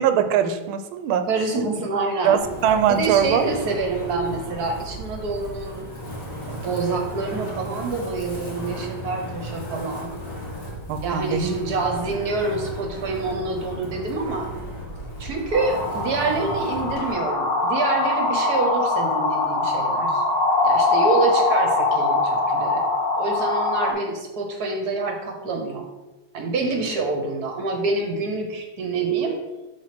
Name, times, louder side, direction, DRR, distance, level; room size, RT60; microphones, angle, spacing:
voice 1, 0.0-1.2 1.5-1.7 2.2-3.5 10.9-11.5, right 8 dB, 75° right, 9 dB, 1.4 m, -21 dB
voice 2, 1.3-2.4 2.9-5.9 6.5-10.1 11.0-14.5 15.2-20.2 20.6-22.8 23.2-25.9 26.3-29.4, right 3 dB, 60° right, 3 dB, 1.2 m, -26 dB
Wind, 2.4-17.1, equal, 50° left, 2.0 m, -35 dB
sound 1, 15.5-23.9, left 3 dB, 75° left, 1.8 m, -22 dB
6.6 x 3.2 x 5.9 m, 1.1 s
omnidirectional pair, 2.4 m